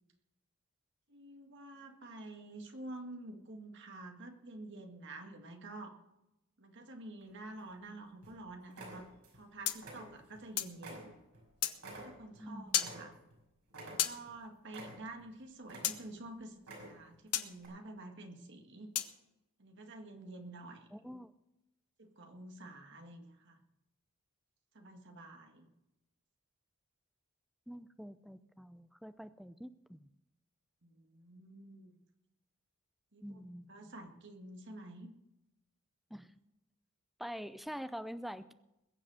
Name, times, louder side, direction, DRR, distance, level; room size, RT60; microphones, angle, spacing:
voice 1, 1.1-5.9 6.6-9.1 9.3-11.2 11.9-13.1 13.9-16.6 16.9-18.9 19.6-20.9 22.0-23.6 24.7-25.7 30.8-32.0 33.1-33.2 33.7-35.1, right 2 dB, 55° right, 4 dB, 1.9 m, -49 dB
sound 1, 7.2-7.8 8.2-8.4 8.7-9.4 9.7-10.5 10.8-13.4 13.7-14.3 14.7-15.3 15.6-16.2 16.6-17.2 17.6-17.7, right 1 dB, 80° right, 5.9 m, -50 dB
sound 2, 9.6-10.8 11.6-11.8 12.7-12.9 14.0-14.2 15.8-16.0 17.3-17.5 18.9-19.1, left 11 dB, 90° left, 1.1 m, -33 dB
voice 2, 12.4-12.8 20.9-21.3 27.7-30.1 33.2-33.9 36.1-36.3 37.2-38.5, equal, ahead, 12 dB, 0.4 m, -46 dB
21.0 x 7.6 x 6.2 m, 0.90 s
head